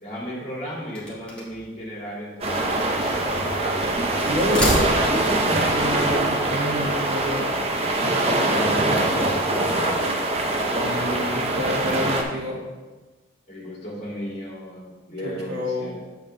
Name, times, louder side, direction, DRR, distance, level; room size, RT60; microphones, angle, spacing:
voice 1, 0.0-3.9 8.5-10.1 13.5-16.0, equal, 35° left, -5 dB, 2.4 m, -34 dB
sound 1, 0.9-1.7 2.6-3.7 4.3-5.4, equal, 5° left, 1.3 m, -29 dB
sound 2, 2.4-12.2, right 2 dB, 30° right, 0.6 m, -23 dB
voice 2, 4.2-4.7 5.0-7.5 10.7-12.6 15.2-15.9, equal, 60° right, -5 dB, 2.2 m, -28 dB
7.1 x 7.1 x 3.3 m, 1.3 s
head